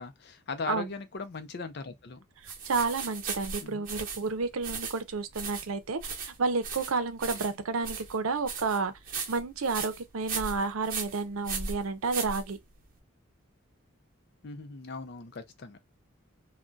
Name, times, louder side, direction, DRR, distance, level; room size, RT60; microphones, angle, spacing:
voice 1, 0.0-2.2 3.6-3.9 14.4-15.8, left 4 dB, 50° left, 0.5 m, -39 dB
sound 1, 2.4-12.9, right 5 dB, 45° right, 0.9 m, -38 dB
voice 2, 2.4-8.9 9.3-12.6, right 4 dB, 90° right, 0.6 m, -31 dB
2.2 x 2.2 x 3.8 m
head